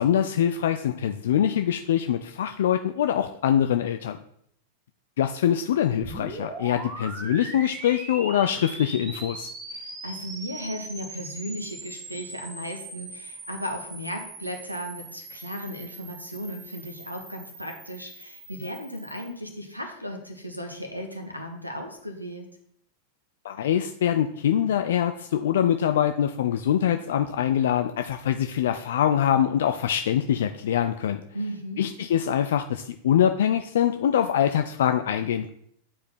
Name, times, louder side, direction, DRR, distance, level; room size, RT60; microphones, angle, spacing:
voice 1, 0.0-4.2 5.2-9.5 23.4-31.2 31.8-35.5, left 10 dB, 60° left, 7 dB, 0.4 m, -24 dB
sound 1, 6.0-19.3, right 2 dB, 25° right, 1.6 m, -40 dB
voice 2, 9.7-22.5 31.3-31.9, equal, 90° left, 2 dB, 1.4 m, -36 dB
8.9 x 4.8 x 4.3 m, 0.69 s
figure-of-eight pair, 90°, 0 cm